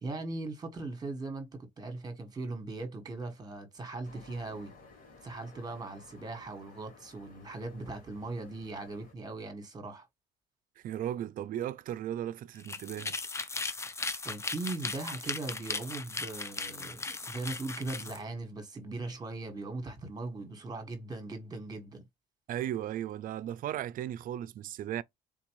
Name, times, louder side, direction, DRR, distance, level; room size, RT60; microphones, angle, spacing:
voice 1, 0.0-4.7 5.2-10.1 14.2-22.0, right 2 dB, 25° right, 1.3 m, -39 dB
sound 1, 4.0-9.1, left 4 dB, 50° left, 2.4 m, -56 dB
voice 2, 10.8-13.1 22.5-25.0, right 11 dB, 55° right, 0.4 m, -36 dB
sound 2, 12.5-18.2, left 3 dB, 15° left, 0.4 m, -37 dB
3.9 x 2.5 x 3.0 m
cardioid pair, 110°, 17 cm